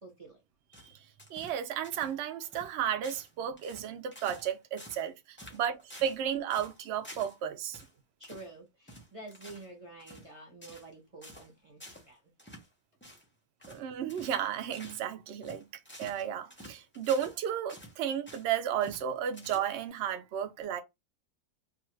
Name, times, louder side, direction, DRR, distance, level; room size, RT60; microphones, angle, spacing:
voice 1, 0.0-0.4 5.4-5.6 8.2-12.3, right 2 dB, 35° right, 0.6 m, -49 dB
sound 1, 0.7-2.1 2.4-2.7 3.0-3.3 3.6-4.5 4.8-5.1 5.4-6.2 6.5-7.4 7.7-7.9 8.2-8.5 8.9-9.7 10.0-10.3 10.6-10.9 11.2-11.5 11.8-12.1 12.4-12.7 13.0-13.3 13.6-13.8 14.1-14.4 14.7-15.1 15.4-17.4 17.7-18.5 18.8-19.1 19.3-19.9, equal, 15° left, 0.4 m, -50 dB
voice 2, 1.3-7.8 13.7-15.7 16.0-20.8, right 9 dB, 80° right, 0.6 m, -33 dB
2.6 x 2.4 x 3.1 m
omnidirectional pair, 1.8 m